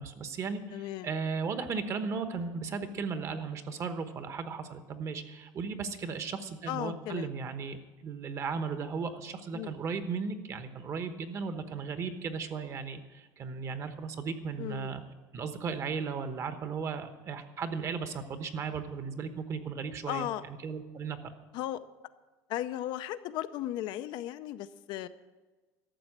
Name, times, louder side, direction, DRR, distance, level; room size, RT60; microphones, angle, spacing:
voice 1, 0.0-15.0 15.3-21.3, right 5 dB, 35° right, 9 dB, 1.1 m, -36 dB
voice 2, 0.7-1.1 6.7-7.3 9.5-9.8 14.6-15.0 20.1-20.4 21.5-21.8 22.5-25.1, left 13 dB, 60° left, 11 dB, 0.6 m, -36 dB
13.0 x 7.1 x 9.8 m, 1.2 s
cardioid pair, 155°, 9 cm